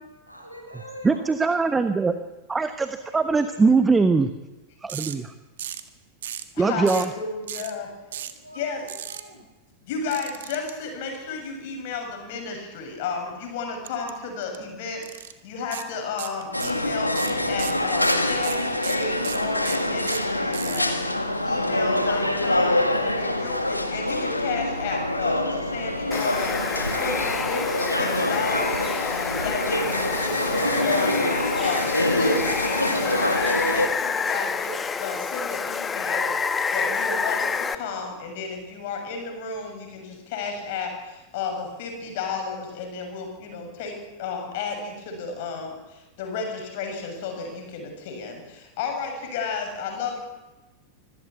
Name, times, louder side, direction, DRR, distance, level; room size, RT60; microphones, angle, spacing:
voice 1, 0.3-1.2 3.0-3.7 8.1-9.4, equal, 90° right, 2 dB, 6.5 m, -45 dB
voice 2, 1.0-2.1 2.5-2.9 3.1-4.3 4.8-5.3 6.6-7.1, right 4 dB, 15° right, 10 dB, 1.2 m, -21 dB
sound 1, 4.9-5.2 5.6-5.9 6.2-6.5 6.9-7.1 7.5-7.7 8.1-8.4 8.9-9.2 10.1-10.7 13.9-14.1 14.4-14.6 15.0-15.3 15.7-15.9 16.2-16.8 17.1-20.9, right 11 dB, 60° right, 1.6 m, -35 dB
voice 3, 6.6-7.9 8.6-8.8 9.9-15.0 15.4-20.9 21.4-25.4 25.7-26.5 27.0-27.6 28.0-30.3 30.7-31.1 31.6-32.4 32.7-34.7 35.0-36.3 36.7-37.5 37.8-40.0 40.3-40.9 41.3-41.5 41.8-43.9 44.2-45.7 46.2-46.5 46.7-48.3 48.8-50.2, left 5 dB, 50° left, 4 dB, 7.2 m, -32 dB
sound 2, 16.5-33.9, left 1 dB, 85° left, 1.9 m, -25 dB
Water, 26.1-37.8, left 5 dB, 15° left, 1.3 m, -28 dB
24.5 x 16.0 x 8.5 m, 1.1 s
figure-of-eight pair, 90°, 0 cm